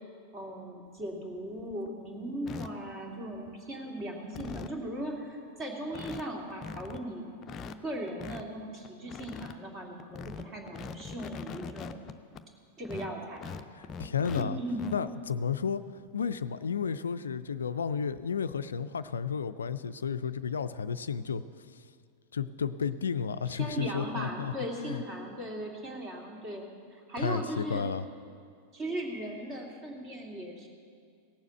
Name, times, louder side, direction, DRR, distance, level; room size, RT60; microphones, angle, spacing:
voice 1, 0.3-7.2 7.8-12.0 12.8-13.5 14.3-14.9 23.5-27.9 28.7-30.7, right 1 dB, 30° right, 0 dB, 2.4 m, -38 dB
sound 1, 1.0-1.1 1.5-1.9 2.5-2.7 3.3-3.7 4.0-4.1 4.3-4.8 5.3-5.4 5.6-5.7 5.9-6.2 6.5-7.0 7.4-8.4 8.8-9.5 10.0-12.5 12.8-14.4 14.7-15.0 16.3-16.4 16.9-17.0 18.2-18.4, left 5 dB, 25° left, 0.6 m, -41 dB
voice 2, 13.7-14.6 14.9-15.8 16.1-21.4 22.3-24.5 24.8-25.0 27.2-28.0, left 6 dB, 70° left, 12 dB, 0.3 m, -32 dB
17.0 x 7.2 x 7.6 m, 2.2 s
figure-of-eight pair, 90°, 0 cm